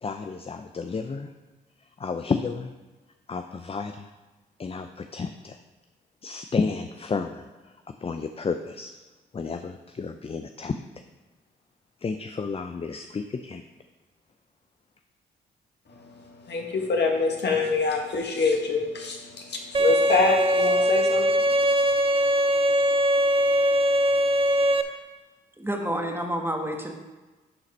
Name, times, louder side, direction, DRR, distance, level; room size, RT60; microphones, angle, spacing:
voice 1, 0.0-1.3 2.0-2.7 3.3-4.1 4.6-5.6 6.2-7.7 8.0-8.9 9.3-10.8 12.0-13.6, left 4 dB, 30° left, 7 dB, 0.5 m, -31 dB
voice 2, 15.9-21.4 21.7-21.8, left 4 dB, 60° left, 1 dB, 1.7 m, -26 dB
Bowed string instrument, 19.7-24.8, equal, 30° right, 0.7 m, -21 dB
voice 3, 25.6-26.9, right 1 dB, 10° right, 2 dB, 1.4 m, -29 dB
11.0 x 4.0 x 4.3 m, 1.2 s
supercardioid pair, 50°, 20 cm